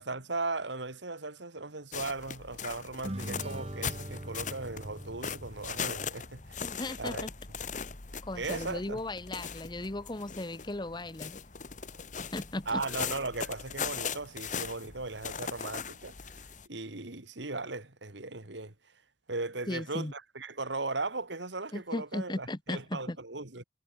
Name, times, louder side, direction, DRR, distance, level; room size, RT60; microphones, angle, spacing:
voice 1, 0.0-7.3 8.3-9.0 12.7-18.9 19.3-23.6, right 3 dB, 75° right, 2.4 m, -37 dB
sound 1, 1.9-16.7, left 6 dB, 40° left, 1.5 m, -39 dB
sound 2, 3.0-6.6, right 1 dB, 35° right, 1.6 m, -42 dB
voice 2, 6.6-7.3 8.2-11.4 12.2-12.8 19.7-20.1 21.7-23.2, left 1 dB, 25° left, 1.0 m, -37 dB
head